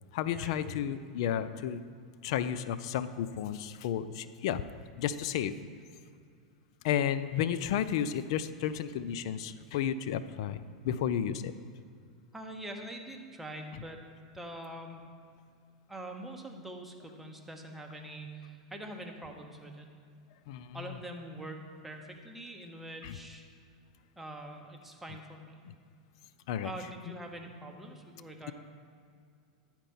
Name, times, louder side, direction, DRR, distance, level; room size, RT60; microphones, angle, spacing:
voice 1, 0.1-1.8 2.2-4.6 5.0-5.5 6.8-11.5 20.5-21.0 23.0-23.1 25.7-25.8 26.5-26.7, left 9 dB, 65° left, 13 dB, 0.3 m, -32 dB
voice 2, 12.3-14.0 14.3-15.0 15.9-19.9 20.7-23.4 24.2-25.6 26.6-28.5, right 1 dB, 5° right, 2 dB, 1.0 m, -44 dB
9.9 x 4.4 x 5.4 m, 2.2 s
hypercardioid pair, 100°, 3 cm